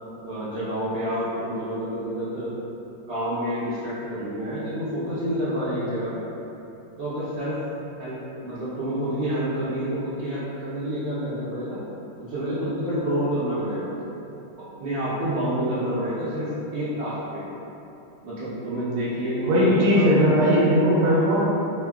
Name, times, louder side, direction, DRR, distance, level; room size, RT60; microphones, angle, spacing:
voice 1, 0.2-2.5 3.1-6.2 7.0-7.6 8.0-11.8 12.3-13.9 14.8-17.4 18.2-20.4 21.0-21.3, equal, 70° right, -14 dB, 1.3 m, -28 dB
voice 2, 19.5-21.4, equal, 90° right, -6 dB, 1.6 m, -18 dB
3.5 x 2.1 x 2.3 m, 2.9 s
omnidirectional pair, 2.4 m